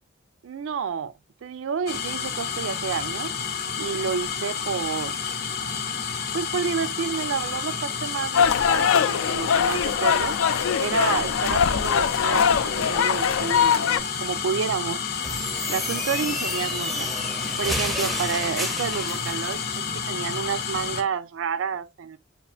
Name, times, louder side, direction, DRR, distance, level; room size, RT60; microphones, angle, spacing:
voice 1, 0.4-1.1 1.4-3.3 3.8-5.2 6.3-10.4 10.8-15.0 15.7-17.1 17.6-22.2, right 6 dB, 85° right, 0.4 m, -30 dB
sound 1, 1.9-21.0, left 6 dB, 50° left, 0.6 m, -30 dB
sound 2, 8.3-14.0, left 7 dB, 90° left, 0.4 m, -22 dB
sound 3, 15.2-19.6, equal, ahead, 0.4 m, -31 dB
6.6 x 2.4 x 2.3 m
head